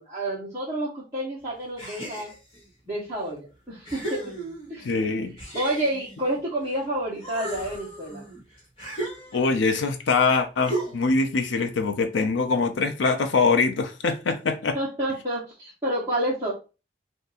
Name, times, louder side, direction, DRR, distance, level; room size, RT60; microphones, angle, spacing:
voice 1, 0.0-2.3 2.9-4.3 4.7-4.9 5.5-8.2 14.7-16.5, right 1 dB, 15° right, 1.0 m, -29 dB
sound 1, 1.8-2.6 3.3-3.4 3.8-4.9 5.4-6.8 7.1-9.7 10.6-11.2, right 2 dB, 30° left, 1.4 m, -35 dB
voice 2, 4.8-5.3 9.3-14.8, left 4 dB, 80° left, 0.5 m, -23 dB
2.6 x 2.6 x 3.9 m
head